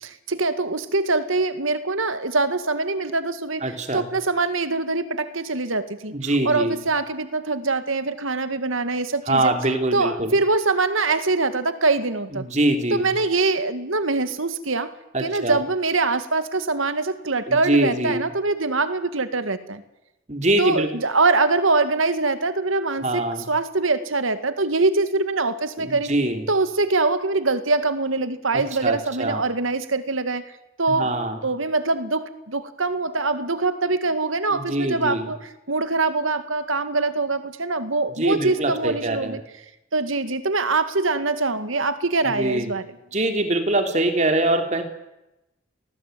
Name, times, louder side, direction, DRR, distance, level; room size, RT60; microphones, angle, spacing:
voice 1, 0.0-6.1 6.5-9.5 9.9-12.5 12.9-14.9 15.2-19.8 20.6-26.1 26.5-30.5 30.8-31.1 31.4-39.4 39.9-42.8, right 3 dB, 85° right, 11 dB, 2.1 m, -23 dB
voice 2, 3.6-4.1 6.1-6.8 9.3-10.4 12.3-13.1 15.1-15.6 17.5-18.3 20.3-21.0 23.0-23.5 25.8-26.5 28.5-29.4 30.9-31.4 34.5-35.3 38.2-39.4 42.2-42.7 43.1-44.8, right 1 dB, 35° right, 6 dB, 3.3 m, -23 dB
28.0 x 19.5 x 9.3 m, 0.94 s
head